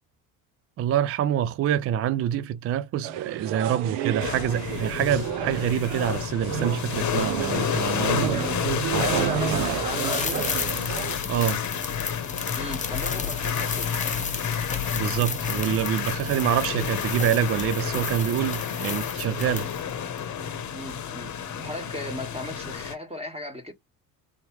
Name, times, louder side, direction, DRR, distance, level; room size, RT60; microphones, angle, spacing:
voice 1, 0.8-8.4 8.9-9.8 11.2-11.6 14.9-19.7, right 10 dB, 35° right, 0.4 m, -26 dB
sound 1, 3.0-11.2, right 11 dB, 70° right, 0.8 m, -31 dB
sound 2, 4.2-22.9, left 8 dB, 40° left, 1.0 m, -30 dB
voice 2, 8.3-8.6 9.0-10.5 12.5-13.9 20.7-21.3 21.6-23.7, left 1 dB, 15° right, 1.5 m, -35 dB
sound 3, 9.9-19.9 20.2-20.3, left 5 dB, 15° left, 0.8 m, -34 dB
3.5 x 3.0 x 3.0 m
supercardioid pair, 80°, 43 cm